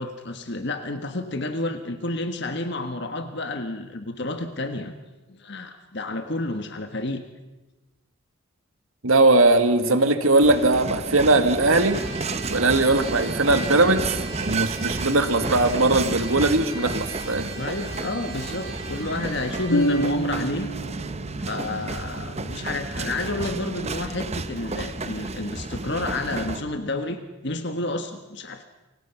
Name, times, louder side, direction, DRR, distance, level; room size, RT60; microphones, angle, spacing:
voice 1, 0.0-4.9 5.3-7.2 9.8-10.2 10.8-10.9 17.5-20.7 21.4-28.6, left 2 dB, 55° left, 7 dB, 1.5 m, -30 dB
voice 2, 9.0-12.0 12.5-17.5, right 2 dB, 80° right, 8 dB, 1.9 m, -20 dB
sound 1, 10.4-26.6, right 3 dB, 30° right, 0.9 m, -32 dB
Trumpet, 11.6-20.1, right 3 dB, 55° right, 7.4 m, -40 dB
sound 2, 19.7-23.5, right 1 dB, 85° left, 1.7 m, -29 dB
29.0 x 25.5 x 5.9 m, 1.1 s
head